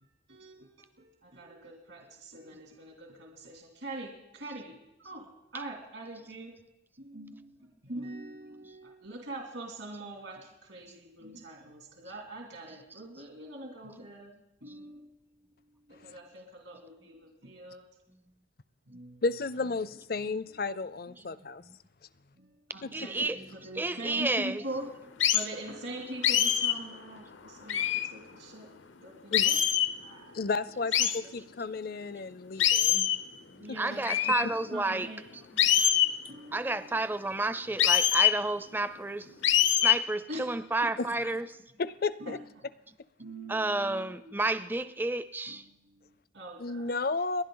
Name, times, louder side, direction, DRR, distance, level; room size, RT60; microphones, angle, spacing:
voice 1, 0.3-6.5 7.0-15.3 15.6-17.8 18.9-19.2 22.7-24.9 25.3-28.7 29.0-29.7 30.0-30.4 31.0-31.4 33.3-35.2 36.3-37.1 40.3-40.5 40.8-40.9 42.2-42.7 43.2-44.3 45.5-46.1 46.3-47.0, right 1 dB, 80° right, 2.7 m, -43 dB
voice 2, 19.2-21.6 22.8-22.9 29.3-29.5 30.3-33.1 41.0-41.2 41.8-42.4 46.6-47.4, left 3 dB, 50° left, 0.5 m, -33 dB
voice 3, 22.7-24.6 33.5-35.4 35.7-35.9 36.5-39.3 39.8-41.5 43.5-45.6, right 2 dB, 10° right, 0.4 m, -31 dB
sound 1, 25.2-25.5 26.2-26.8 27.7-28.1 29.3-29.9 30.9-31.2 32.6-33.2 34.1-34.4 35.6-36.1 37.8-38.4 39.4-40.0, left 11 dB, 80° left, 0.7 m, -24 dB
30.0 x 11.0 x 3.9 m
head